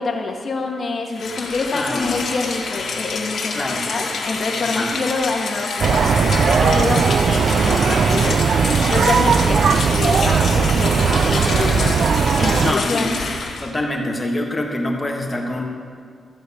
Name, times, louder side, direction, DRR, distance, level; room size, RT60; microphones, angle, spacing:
voice 1, 0.0-12.0 12.4-13.1, left 3 dB, 45° left, 2 dB, 1.4 m, -26 dB
Rain, 1.1-13.7, left 4 dB, 65° left, 1.8 m, -27 dB
voice 2, 1.7-2.2 3.5-3.9 4.7-4.9 12.6-13.1 13.6-15.6, left 1 dB, 20° left, 1 dB, 1.5 m, -25 dB
sound 1, 5.8-12.7, right 6 dB, 55° right, 0.4 m, -18 dB
14.0 x 5.3 x 8.3 m, 2.1 s
wide cardioid pair, 145°, 0 cm